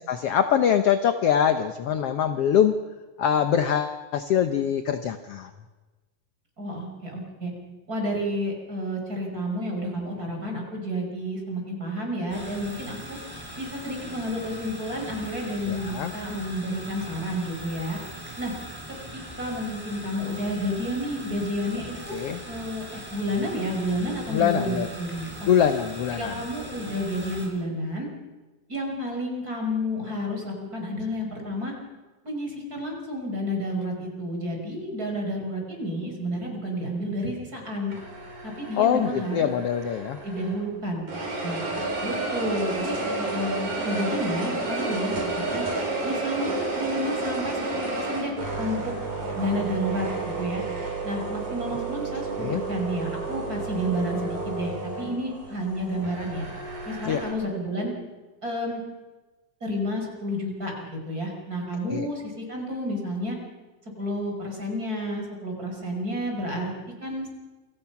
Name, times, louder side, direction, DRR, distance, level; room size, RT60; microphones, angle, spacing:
voice 1, 0.1-2.8 3.2-5.5 15.7-16.1 22.1-22.4 24.3-24.9 25.5-26.4 38.7-40.2 52.4-52.6 57.0-57.2 61.9-62.1, left 9 dB, 70° left, 9 dB, 1.4 m, -23 dB
voice 2, 6.6-7.5 7.9-13.2 13.6-18.0 18.4-18.5 19.1-22.2 22.5-25.7 26.1-28.1 28.7-31.8 32.2-37.9 38.4-39.5 40.2-41.1 41.4-41.7 42.0-45.7 46.0-48.9 49.4-50.1 50.4-50.6 51.0-56.5 56.8-57.9 58.4-58.8 59.6-63.4 64.0-66.7 67.0-67.3, equal, 25° right, 1 dB, 6.0 m, -30 dB
sound 1, 12.3-27.5, right 1 dB, 5° right, 6.0 m, -41 dB
sound 2, 37.9-40.7 41.1-57.3, right 3 dB, 55° right, 6.7 m, -31 dB
28.0 x 26.0 x 6.0 m, 1.2 s
omnidirectional pair, 4.0 m